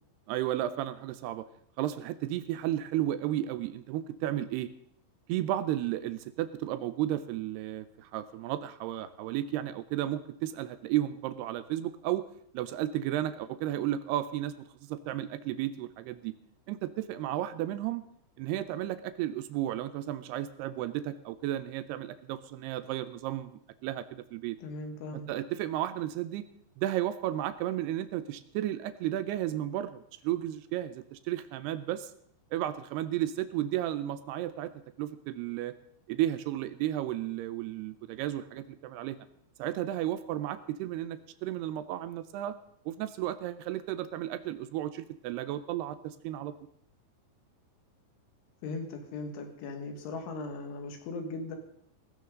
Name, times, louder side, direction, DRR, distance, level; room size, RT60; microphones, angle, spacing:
voice 1, 0.3-1.5 1.8-4.7 5.3-12.2 12.5-14.5 14.8-16.3 16.7-18.0 18.4-24.6 25.1-26.4 26.8-32.1 32.5-34.7 35.0-35.7 36.1-39.2 39.6-42.6 42.9-46.5, right 13 dB, 80° right, 13 dB, 2.4 m, -33 dB
voice 2, 24.6-25.3 48.6-51.6, left 3 dB, 90° left, 5 dB, 4.3 m, -38 dB
17.0 x 15.0 x 3.9 m, 0.69 s
omnidirectional pair, 5.2 m